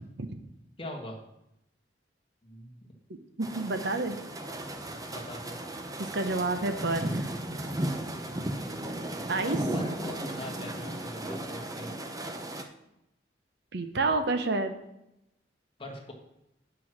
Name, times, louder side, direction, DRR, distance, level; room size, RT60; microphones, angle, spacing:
voice 1, 0.8-1.2 2.4-2.8 5.2-5.6 9.6-11.9 15.8-16.1, left 1 dB, 30° left, 1 dB, 1.7 m, -41 dB
sound 1, 3.4-12.6, right 1 dB, 20° right, 0.8 m, -35 dB
voice 2, 3.4-4.2 6.0-7.3 9.3-9.7 13.7-14.8, right 3 dB, 65° right, 9 dB, 0.9 m, -29 dB
8.8 x 6.2 x 6.1 m, 0.85 s
head